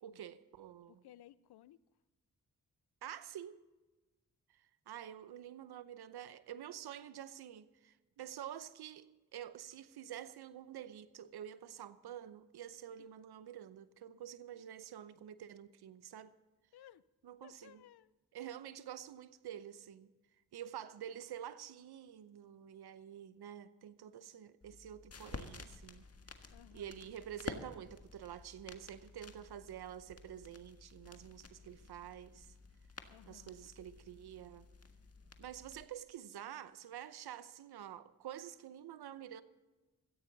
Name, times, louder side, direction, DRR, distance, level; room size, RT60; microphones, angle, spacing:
voice 1, 0.0-1.0 3.0-3.6 4.5-16.3 17.2-17.8 18.3-20.1 20.5-26.1 26.7-32.5 33.3-34.7 35.4-39.4, right 10 dB, 85° right, 0.8 m, -48 dB
voice 2, 0.9-1.9 13.0-13.2 14.5-14.6 16.7-17.0 17.4-18.1 19.1-19.2 26.5-27.1 33.1-33.7, left 12 dB, 90° left, 0.6 m, -60 dB
sound 1, 24.6-35.9, left 4 dB, 40° left, 1.6 m, -52 dB
16.5 x 14.5 x 4.0 m
cardioid pair, 45°, 38 cm